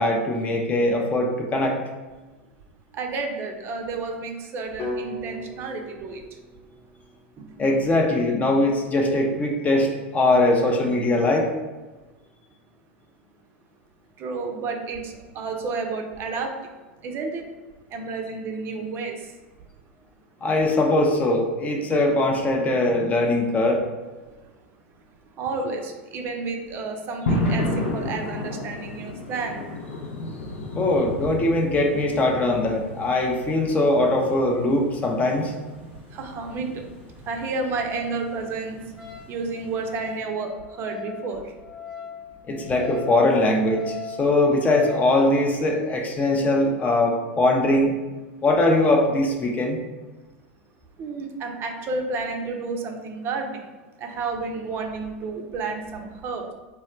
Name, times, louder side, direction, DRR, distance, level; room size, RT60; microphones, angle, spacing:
voice 1, 0.0-1.8 7.6-11.5 20.4-23.8 30.8-35.5 42.5-47.9 48.4-49.8, left 2 dB, 25° left, 1 dB, 0.5 m, -21 dB
voice 2, 2.9-6.4 7.4-7.5 14.2-16.5 17.0-17.5 17.9-19.4 25.4-29.6 36.1-38.8 39.3-41.5 51.0-53.7 54.0-56.5, right 4 dB, 35° right, 3 dB, 0.5 m, -31 dB
sound 1, 4.8-8.9, left 1 dB, 40° left, 0.9 m, -38 dB
sound 2, 27.3-40.2, left 1 dB, 70° left, 0.6 m, -33 dB
Wind instrument woodwind instrument, 39.0-45.1, left 7 dB, 5° right, 1.1 m, -40 dB
2.2 x 2.1 x 3.7 m, 1.2 s
hypercardioid pair, 90°, 6 cm